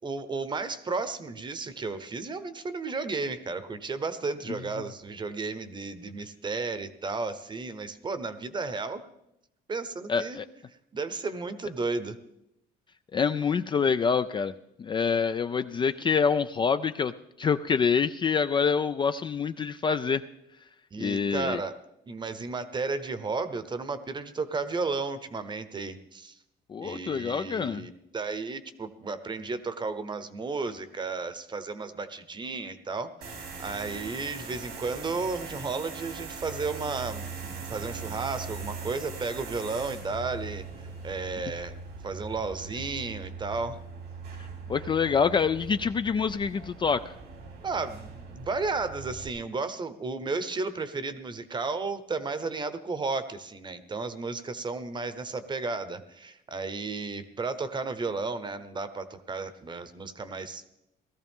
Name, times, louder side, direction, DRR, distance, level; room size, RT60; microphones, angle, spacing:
voice 1, 0.0-9.0 9.7-10.4 10.9-12.2 20.9-21.8 22.1-26.3 26.8-40.7 41.0-41.8 42.0-43.8 47.6-60.6, right 4 dB, 25° right, 12 dB, 0.9 m, -33 dB
voice 2, 10.1-10.5 13.1-14.5 14.8-17.1 17.4-20.2 21.0-21.6 26.7-27.8 44.7-47.0, left 6 dB, 30° left, 11 dB, 0.4 m, -26 dB
sound 1, 33.2-49.3, right 4 dB, 85° right, 2.9 m, -41 dB
18.0 x 13.5 x 3.6 m, 0.86 s
cardioid pair, 110°, 17 cm